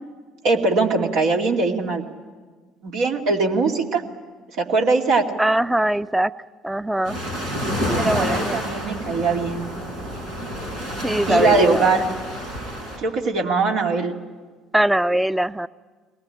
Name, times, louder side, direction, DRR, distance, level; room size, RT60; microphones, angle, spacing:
voice 1, 0.4-2.0 2.8-4.0 4.6-5.2 7.9-9.7 11.3-12.1 13.0-14.2, right 3 dB, 70° right, 1 dB, 2.5 m, -21 dB
voice 2, 5.4-6.3 6.6-7.2 7.9-8.6 11.0-12.1 14.7-15.7, right 1 dB, 5° right, 15 dB, 0.6 m, -22 dB
sound 1, 7.0-13.0, equal, 90° right, 6.0 m, -28 dB
22.5 x 19.0 x 9.9 m, 1.5 s
hypercardioid pair, 60°, 0 cm